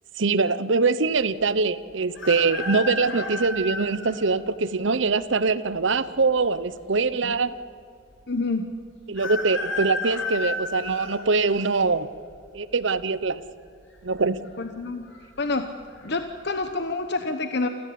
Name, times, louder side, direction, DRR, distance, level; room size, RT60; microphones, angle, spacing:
voice 1, 0.2-7.5 9.1-12.1 12.5-13.4 14.0-14.4, right 4 dB, 65° right, 15 dB, 0.9 m, -23 dB
sound 1, 2.1-4.2 4.8-4.9 6.0-6.7 7.0-7.1 7.2-7.3 9.2-11.8 12.3-12.7 13.8-14.2 14.4-14.5 15.1-15.5 15.9-16.1, left 3 dB, 70° left, 7.5 m, -32 dB
voice 2, 8.3-8.7 14.6-15.1 15.4-15.7 16.0-17.7, left 3 dB, 55° left, 7 dB, 1.0 m, -28 dB
28.0 x 14.5 x 8.7 m, 2.3 s
head